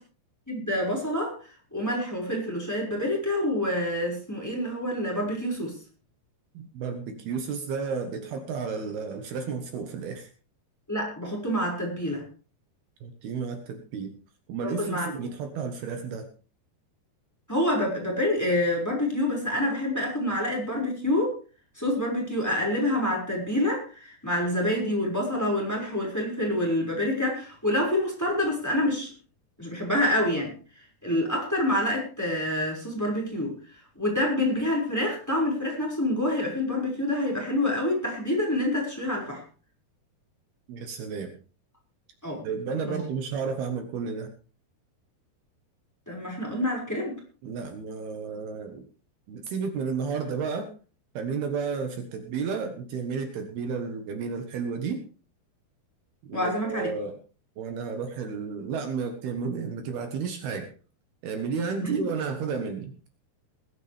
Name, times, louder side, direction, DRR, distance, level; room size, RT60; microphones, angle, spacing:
voice 1, 0.5-1.4 1.7-5.8 10.9-12.2 14.6-15.1 17.5-21.4 21.8-29.1 29.6-33.6 34.0-39.4 42.2-42.4 42.8-42.9 46.1-47.2 56.3-56.9 61.8-61.9, left 1 dB, 5° left, -1 dB, 5.4 m, -27 dB
voice 2, 6.5-10.3 13.0-14.2 14.5-16.3 40.7-41.4 42.4-44.3 47.4-48.9 49.3-50.7 51.1-55.0 56.3-57.2 57.6-60.7 61.2-62.9, right 5 dB, 70° right, 6 dB, 3.2 m, -32 dB
20.0 x 13.0 x 3.4 m, 0.37 s
omnidirectional pair, 4.8 m